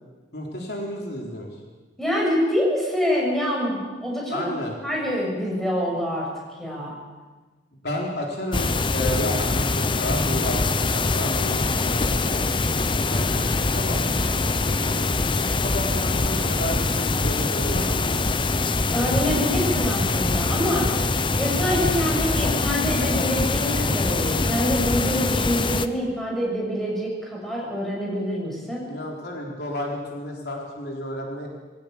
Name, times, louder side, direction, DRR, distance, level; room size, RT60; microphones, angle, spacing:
voice 1, 0.3-1.6 4.3-4.7 7.8-14.5 14.8-15.1 15.6-18.3 22.0-22.3 28.9-31.5, equal, 60° left, -1 dB, 3.8 m, -32 dB
voice 2, 2.0-4.5 4.8-6.3 6.6-6.9 18.9-28.9, equal, ahead, -3 dB, 6.9 m, -26 dB
sound 1, 8.5-25.9, left 3 dB, 30° left, 0.8 m, -23 dB
22.0 x 17.5 x 8.4 m, 1.3 s
head